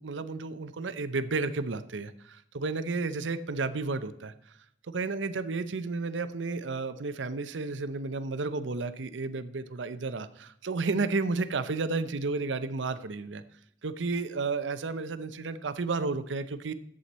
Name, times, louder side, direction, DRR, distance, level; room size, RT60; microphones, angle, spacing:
voice 1, 0.0-4.6 4.9-13.4 13.8-16.7, right 3 dB, 80° right, 12 dB, 0.7 m, -32 dB
11.0 x 7.7 x 4.2 m, 0.73 s
head